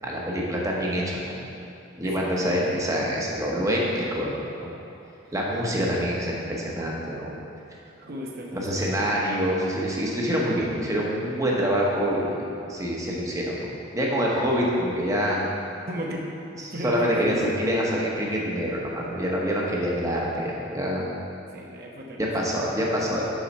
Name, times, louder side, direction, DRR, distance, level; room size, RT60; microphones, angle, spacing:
voice 1, 0.0-1.5 2.0-4.7 5.3-7.3 8.5-15.4 16.6-21.0 22.2-23.2, equal, 15° right, -3 dB, 1.1 m, -26 dB
voice 2, 2.0-3.0 8.0-8.9 15.9-16.2 16.5-17.6 21.5-23.1, equal, 55° right, -1 dB, 0.9 m, -35 dB
7.2 x 4.8 x 5.4 m, 2.7 s
head